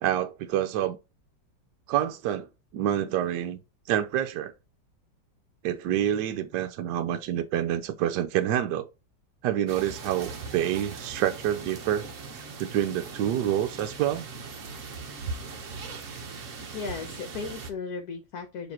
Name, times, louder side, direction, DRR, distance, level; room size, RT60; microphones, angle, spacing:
voice 1, 0.0-1.0 1.9-3.6 3.9-4.5 5.6-8.9 9.4-12.0 12.6-14.3, right 11 dB, 75° right, 1.2 m, -27 dB
sound 1, 9.7-17.7, right 4 dB, 50° right, 1.2 m, -40 dB
voice 2, 16.7-18.7, left 4 dB, 65° left, 1.3 m, -36 dB
7.0 x 3.2 x 4.2 m
omnidirectional pair, 2.0 m